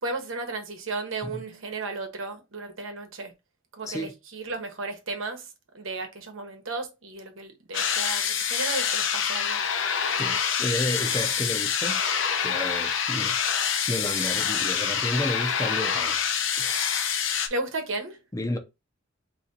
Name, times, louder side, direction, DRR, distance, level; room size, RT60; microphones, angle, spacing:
voice 1, 0.0-3.3 3.8-5.5 5.7-9.6 17.5-18.2, right 3 dB, 75° right, 1.1 m, -34 dB
voice 2, 3.8-4.1 10.2-12.0 12.4-16.2 16.6-16.8 18.3-18.6, left 1 dB, 15° left, 0.7 m, -32 dB
sound 1, 7.7-17.5, left 7 dB, 70° left, 0.8 m, -26 dB
4.0 x 2.9 x 3.9 m
head